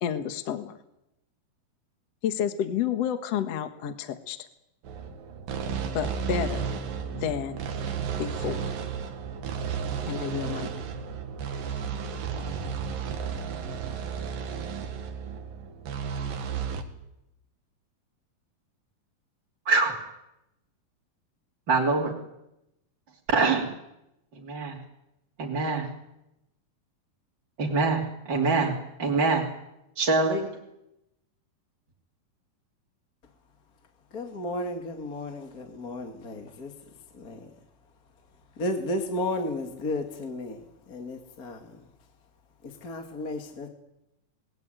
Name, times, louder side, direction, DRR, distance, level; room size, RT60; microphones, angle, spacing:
voice 1, 0.0-0.8 2.2-4.5 5.9-6.7 7.1-7.6 8.2-8.7 10.1-10.8, left 9 dB, 55° left, 8 dB, 2.2 m, -30 dB
sound 1, 4.8-16.8, right 6 dB, 75° right, 3.6 m, -33 dB
voice 2, 19.7-20.0 21.7-22.2 23.3-23.7 24.3-24.8 25.4-25.9 27.6-29.5 30.0-30.5, right 3 dB, 30° right, -2 dB, 3.5 m, -25 dB
voice 3, 34.1-36.7 37.1-37.5 38.6-41.8 42.6-43.7, left 1 dB, 30° left, 4 dB, 2.3 m, -33 dB
28.0 x 20.5 x 9.3 m, 0.90 s
omnidirectional pair, 4.1 m